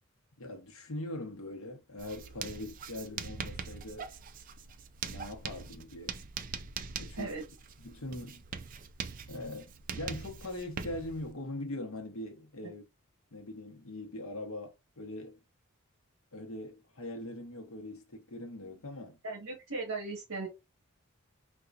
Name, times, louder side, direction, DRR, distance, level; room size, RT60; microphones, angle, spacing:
voice 1, 0.4-4.1 5.0-6.2 7.0-7.4 7.8-8.4 9.3-12.8 13.3-15.4 16.3-19.2, left 1 dB, 75° left, 0.9 m, -42 dB
Writing, 2.0-11.3, right 6 dB, 40° right, 0.4 m, -42 dB
voice 2, 19.2-20.5, right 3 dB, 70° right, 1.3 m, -37 dB
4.2 x 2.3 x 2.4 m
head